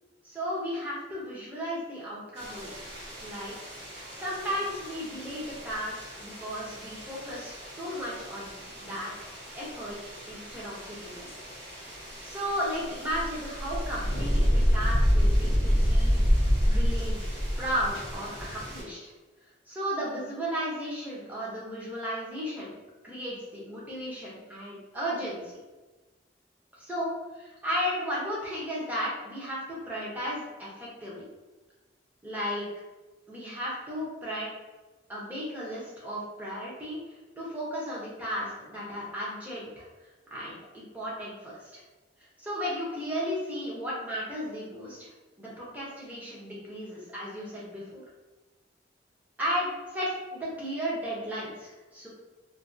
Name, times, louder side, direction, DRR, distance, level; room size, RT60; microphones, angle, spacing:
voice 1, 0.2-2.8 3.2-3.5 4.2-9.3 9.5-10.0 10.3-11.3 12.2-16.2 16.6-17.3 17.6-19.1 19.7-22.7 23.0-25.6 26.7-31.2 32.2-32.7 33.3-34.5 35.1-37.0 37.4-39.8 40.3-41.8 42.4-45.1 45.4-48.0 49.4-52.1, equal, 10° right, -7 dB, 0.8 m, -34 dB
sound 1, 2.4-18.8, equal, 70° right, 1.4 m, -29 dB
2.7 x 2.6 x 2.6 m, 1.2 s
head